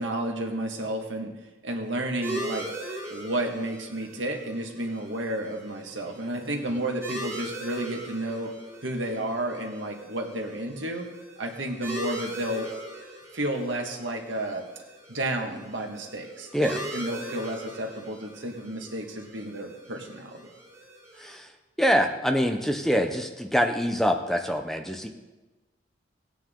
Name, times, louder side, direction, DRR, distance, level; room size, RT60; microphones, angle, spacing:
voice 1, 0.0-1.3 1.6-2.7 3.1-8.5 8.8-11.1 11.4-12.8 13.3-14.7 15.1-20.5, right 1 dB, 85° right, 2 dB, 1.7 m, -31 dB
sound 1, 2.2-21.4, right 1 dB, 15° right, 2.3 m, -40 dB
voice 2, 21.2-21.5 21.8-25.1, equal, ahead, 4 dB, 0.7 m, -25 dB
17.5 x 9.1 x 3.8 m, 1.1 s
head